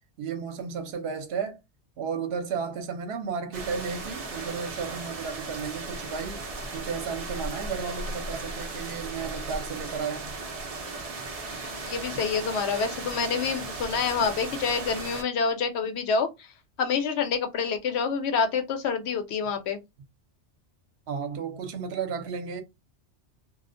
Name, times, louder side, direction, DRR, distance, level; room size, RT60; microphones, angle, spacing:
voice 1, 0.2-1.6 2.0-6.4 6.7-10.3 21.1-22.6, right 6 dB, 65° right, 0.9 m, -33 dB
sound 1, 3.5-15.2, right 3 dB, 45° right, 0.5 m, -36 dB
voice 2, 11.4-16.3 16.8-19.8, left 5 dB, 70° left, 0.9 m, -27 dB
2.4 x 2.1 x 2.5 m
omnidirectional pair, 1.2 m